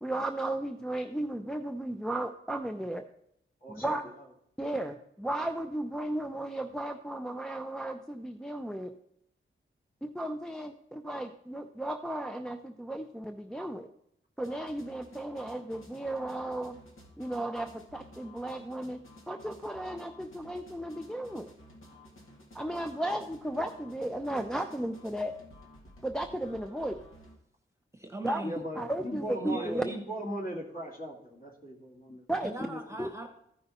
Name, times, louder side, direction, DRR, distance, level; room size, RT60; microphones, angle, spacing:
voice 1, 0.0-3.0 3.7-4.0 4.6-8.9 10.0-13.9 14.4-16.8 17.2-21.5 22.5-25.4 26.0-27.0 28.2-28.4 28.7-29.8 32.3-32.5 33.0-33.1, right 1 dB, 5° left, 5 dB, 0.4 m, -35 dB
voice 2, 3.6-4.0 28.4-32.2 32.6-32.8, equal, 45° left, -2 dB, 2.3 m, -38 dB
sound 1, 14.4-27.4, left 1 dB, 75° left, 2.1 m, -54 dB
voice 3, 27.9-28.6 29.4-30.0 32.4-33.3, right 2 dB, 15° right, 4 dB, 1.0 m, -39 dB
14.0 x 5.4 x 4.1 m, 0.76 s
wide cardioid pair, 150°, 21 cm